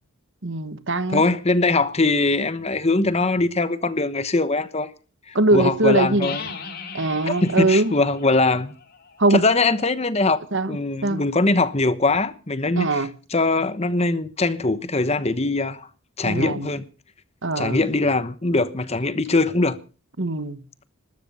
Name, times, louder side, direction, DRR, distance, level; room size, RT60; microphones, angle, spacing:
voice 1, 0.4-1.2 5.3-6.3 6.9-7.9 9.2-9.4 10.5-10.8 11.0-11.2 12.8-13.1 16.2-16.7 17.4-17.8 20.2-20.6, right 2 dB, 55° right, 1.3 m, -21 dB
voice 2, 1.1-4.9 5.3-6.5 7.2-8.7 9.3-10.4 10.7-15.9 16.2-16.8 17.6-19.8, left 3 dB, 30° left, 1.0 m, -22 dB
sound 1, 6.2-9.9, left 5 dB, 45° left, 3.5 m, -38 dB
20.0 x 13.0 x 5.4 m
head